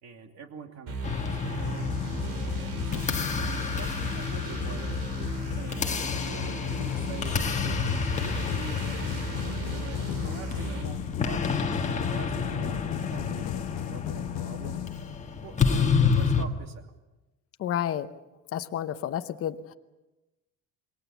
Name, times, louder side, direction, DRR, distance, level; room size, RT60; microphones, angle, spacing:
voice 1, 0.0-3.1 3.7-5.0 5.5-14.8 15.4-16.9, right 5 dB, 45° right, 5 dB, 2.7 m, -45 dB
sound 1, 0.9-10.8, equal, 70° right, 5.9 m, -35 dB
sound 2, 1.0-16.5, left 5 dB, 20° left, 1.4 m, -30 dB
sound 3, 1.6-15.5, left 15 dB, 80° left, 1.0 m, -36 dB
voice 2, 17.6-18.1 18.5-19.7, left 10 dB, 40° left, 8 dB, 0.9 m, -30 dB
28.0 x 22.5 x 7.2 m, 1.0 s
cardioid pair, 175°, 37 cm